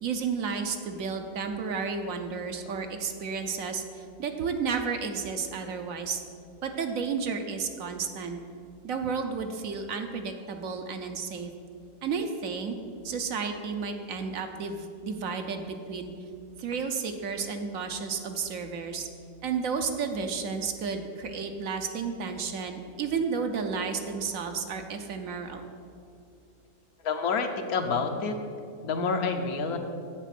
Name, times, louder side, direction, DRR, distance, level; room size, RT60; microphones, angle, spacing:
voice 1, 0.0-3.8 4.2-6.2 6.6-8.4 8.8-11.5 12.0-12.8 13.0-16.1 16.6-19.1 19.4-25.6, right 5 dB, 65° right, 6 dB, 1.1 m, -32 dB
voice 2, 27.0-28.4 28.8-29.8, left 4 dB, 75° left, 5 dB, 1.3 m, -28 dB
8.2 x 8.0 x 5.9 m, 2.4 s
omnidirectional pair, 1.6 m